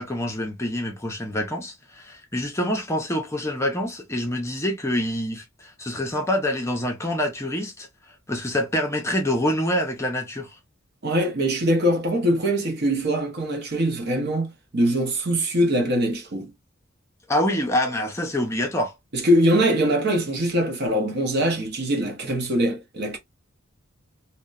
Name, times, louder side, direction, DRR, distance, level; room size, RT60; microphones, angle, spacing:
voice 1, 0.0-7.9 8.3-10.6 17.3-18.9, left 1 dB, 15° left, 0.5 m, -26 dB
voice 2, 11.0-16.5 19.1-23.2, equal, 50° right, 0.8 m, -22 dB
2.7 x 2.1 x 2.3 m
head